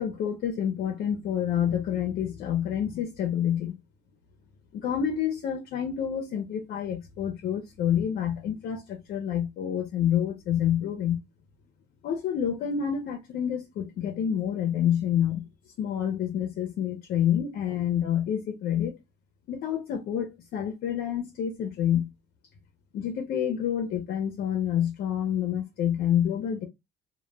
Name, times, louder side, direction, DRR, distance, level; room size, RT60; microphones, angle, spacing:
voice 1, 0.0-3.8 4.7-11.2 12.0-15.5 15.8-19.0 19.5-22.1 22.9-26.7, left 9 dB, 65° left, 0.5 m, -28 dB
2.1 x 2.0 x 3.2 m
cardioid pair, 110°, 17 cm